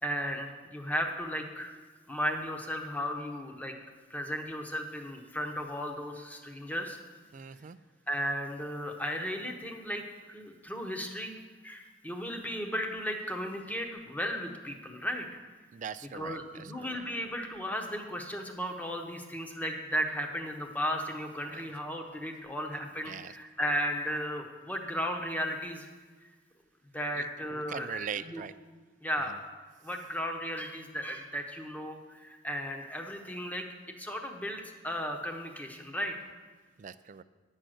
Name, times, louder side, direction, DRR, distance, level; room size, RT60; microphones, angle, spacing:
voice 1, 0.0-1.7 2.1-3.7 4.1-7.0 8.1-10.0 10.3-11.3 11.6-15.4 16.1-25.9 26.2-26.3 26.9-28.4 29.0-29.4 29.8-33.6 34.0-36.1, equal, 10° left, 3 dB, 1.0 m, -35 dB
voice 2, 7.3-7.8 15.7-16.9 21.5-21.6 23.1-23.3 27.2-27.3 27.5-28.5 29.3-29.4 36.8-37.2, right 7 dB, 40° right, 15 dB, 0.3 m, -41 dB
10.0 x 6.4 x 7.7 m, 1.4 s
head